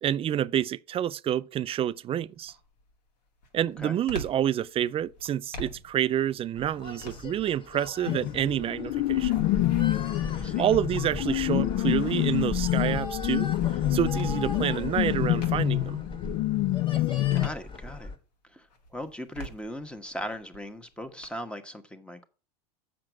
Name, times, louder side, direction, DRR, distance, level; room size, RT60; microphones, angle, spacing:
voice 1, 0.0-2.5 3.5-9.4 10.6-13.5 13.9-16.0, right 11 dB, 30° right, 0.4 m, -28 dB
sound 1, 1.6-1.9 2.4-16.0 16.4-18.2 18.7-21.3, equal, 85° left, 2.3 m, -47 dB
sound 2, 6.5-18.2, left 1 dB, 25° left, 1.9 m, -38 dB
sound 3, 8.1-17.5, left 16 dB, 50° left, 0.5 m, -27 dB
voice 2, 10.3-10.7 17.3-18.1 18.5-18.7 18.9-22.2, equal, 5° left, 1.2 m, -38 dB
7.5 x 6.0 x 6.0 m
hypercardioid pair, 100°, 21 cm